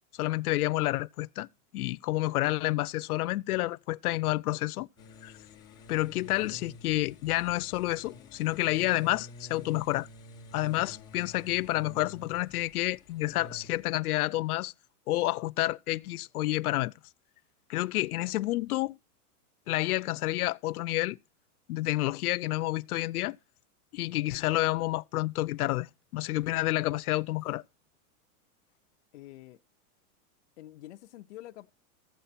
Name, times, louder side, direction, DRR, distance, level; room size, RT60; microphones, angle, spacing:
voice 1, 0.1-1.5 1.7-4.9 5.2-5.3 5.9-10.1 10.5-14.7 15.1-16.9 17.7-19.0 19.7-21.2 21.7-23.4 23.9-27.6, left 17 dB, 90° left, 0.6 m, -29 dB
sound 1, 5.0-13.9, left 2 dB, 10° left, 1.2 m, -50 dB
voice 2, 29.1-29.6 30.6-31.7, left 15 dB, 50° left, 0.7 m, -47 dB
15.0 x 7.4 x 4.3 m
supercardioid pair, 175°, 43 cm